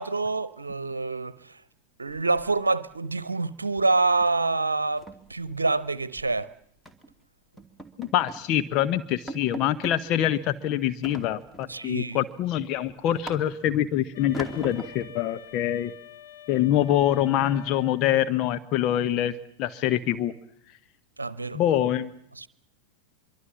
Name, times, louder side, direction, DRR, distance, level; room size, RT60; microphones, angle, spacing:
voice 1, 0.0-1.6 2.0-5.0 5.3-6.5 11.7-12.2 21.2-21.6 22.4-22.5, right 3 dB, 80° right, 0.9 m, -26 dB
sound 1, 2.1-2.9 3.2-3.5 3.8-4.0 4.3-4.4 4.8-6.3 6.9-7.1 7.6-8.5 8.9-9.0 9.3-10.0 11.0-11.8 12.2-13.8 14.3-15.1, right 1 dB, 5° left, 2.6 m, -41 dB
voice 2, 8.0-15.9 16.5-20.3 21.5-22.2, left 11 dB, 40° left, 1.0 m, -25 dB
Wind instrument woodwind instrument, 14.1-18.3, left 10 dB, 60° left, 1.8 m, -47 dB
25.0 x 23.5 x 7.4 m
figure-of-eight pair, 90°, 0 cm